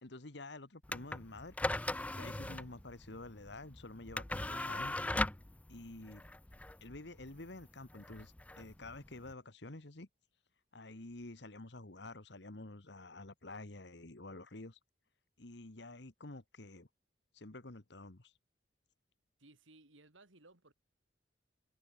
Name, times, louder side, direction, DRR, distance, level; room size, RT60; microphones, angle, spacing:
voice 1, 0.0-1.5 2.2-5.0 5.7-6.2 6.8-10.1 10.7-14.8 15.4-16.9 17.3-18.3, left 2 dB, 60° left, 1.6 m, -49 dB
sound 1, 0.8-9.3, left 1 dB, 5° left, 0.4 m, -40 dB
voice 2, 19.4-20.7, right 2 dB, 85° right, 3.4 m, -61 dB
head